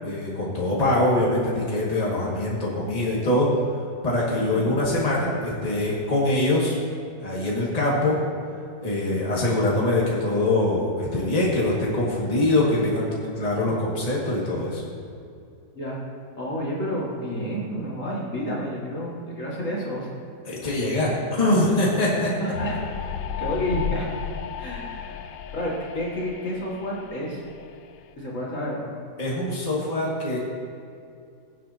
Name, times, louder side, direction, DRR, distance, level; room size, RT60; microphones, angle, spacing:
voice 1, 0.0-3.5 4.0-6.8 7.2-8.2 8.8-13.1 13.4-14.8 20.4-22.3 29.2-30.4, left 1 dB, 25° left, -6 dB, 2.1 m, -23 dB
voice 2, 16.4-20.1 22.4-22.7 23.4-24.1 24.6-25.2 25.5-27.4 28.2-28.9, equal, 50° left, -5 dB, 2.5 m, -30 dB
sound 1, 22.5-28.0, left 9 dB, 70° left, 0.8 m, -33 dB
22.5 x 7.9 x 2.9 m, 2.4 s
omnidirectional pair, 1.7 m